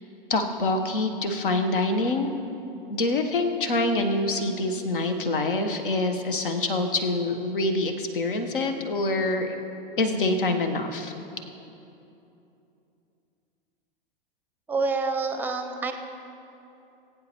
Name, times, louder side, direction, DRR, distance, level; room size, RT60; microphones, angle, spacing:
voice 1, 0.3-2.3 2.9-9.5 10.0-11.1, left 2 dB, 65° left, 7 dB, 1.2 m, -25 dB
voice 2, 14.7-15.9, right 4 dB, 5° right, 6 dB, 0.7 m, -27 dB
20.0 x 9.2 x 3.0 m, 2.8 s
figure-of-eight pair, 100°, 29 cm